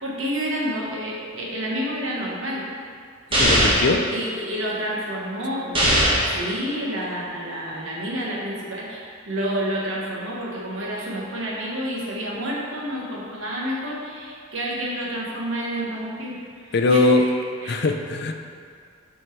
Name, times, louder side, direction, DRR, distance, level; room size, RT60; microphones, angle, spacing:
voice 1, 0.0-2.6 4.0-5.8 6.3-17.9, equal, 85° right, -4 dB, 1.4 m, -29 dB
voice 2, 3.3-4.1 16.7-17.2 17.7-18.3, left 3 dB, 55° left, 5 dB, 0.5 m, -20 dB
sound 1, 3.3-3.9 5.7-6.3, equal, 25° right, 1.2 m, -18 dB
6.3 x 4.5 x 4.5 m, 2.1 s
head